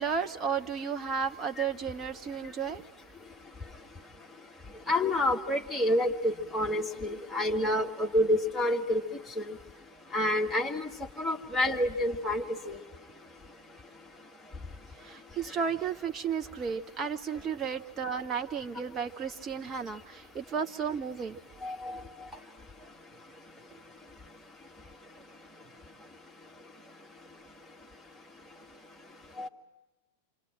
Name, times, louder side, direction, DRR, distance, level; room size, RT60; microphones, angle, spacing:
voice 1, 0.0-2.8 15.0-21.4, right 6 dB, 25° right, 5 dB, 1.2 m, -33 dB
voice 2, 4.9-9.0 9.4-9.5 10.1-10.9 11.2-12.8 21.6-22.0 29.4-29.5, left 1 dB, 5° left, -1 dB, 2.4 m, -28 dB
28.0 x 25.5 x 7.6 m, 1.0 s
figure-of-eight pair, 90°, 0 cm